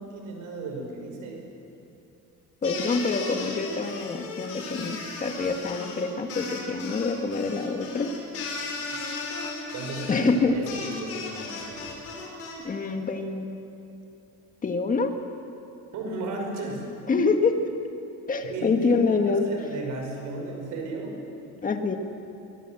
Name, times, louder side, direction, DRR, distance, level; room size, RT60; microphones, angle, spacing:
voice 1, 0.0-1.4 9.7-11.8 15.9-16.9 18.5-21.2, right 2 dB, 65° right, 1 dB, 5.7 m, -35 dB
sound 1, 2.6-12.5, left 3 dB, 45° left, 5.4 m, -36 dB
voice 2, 2.6-8.1 10.1-10.6 12.6-13.4 14.6-15.1 17.1-17.6 18.3-19.5 21.6-22.0, left 4 dB, 25° left, 6 dB, 1.7 m, -26 dB
23.5 x 20.5 x 7.7 m, 2.8 s
cardioid pair, 155°, 33 cm